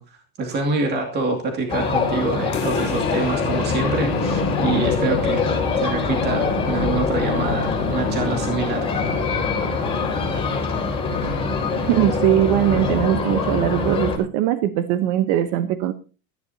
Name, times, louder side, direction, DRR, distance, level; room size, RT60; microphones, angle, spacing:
voice 1, 0.0-5.5 5.8-8.9, right 3 dB, 25° right, 3 dB, 2.4 m, -26 dB
sound 1, 1.7-14.2, left 4 dB, 15° left, 6.2 m, -23 dB
sound 2, 2.5-7.6, left 6 dB, 30° left, 5.1 m, -34 dB
voice 2, 11.8-15.9, right 13 dB, 55° right, 10 dB, 1.1 m, -20 dB
18.5 x 14.5 x 2.8 m, 0.34 s
cardioid pair, 165°, 41 cm